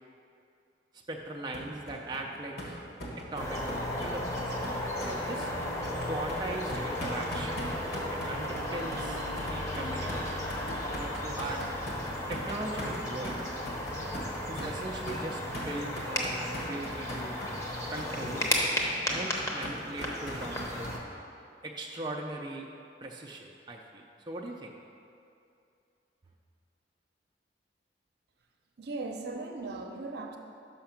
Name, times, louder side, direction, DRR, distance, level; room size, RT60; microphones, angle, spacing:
voice 1, 1.1-2.8 3.2-3.6 4.0-4.5 5.0-5.5 6.1-7.8 8.1-9.2 9.5-10.4 11.0-11.7 12.3-13.4 14.5-17.4 17.9-18.6 19.1-20.9 21.6-22.7 23.0-24.7, right 2 dB, 25° right, -1 dB, 0.4 m, -39 dB
sound 1, 1.5-21.0, equal, 60° left, 1.4 m, -40 dB
sound 2, 3.4-21.0, left 1 dB, 15° left, 0.8 m, -34 dB
voice 2, 28.8-30.4, right 3 dB, 65° right, 3 dB, 0.6 m, -38 dB
5.8 x 5.7 x 5.7 m, 2.5 s
head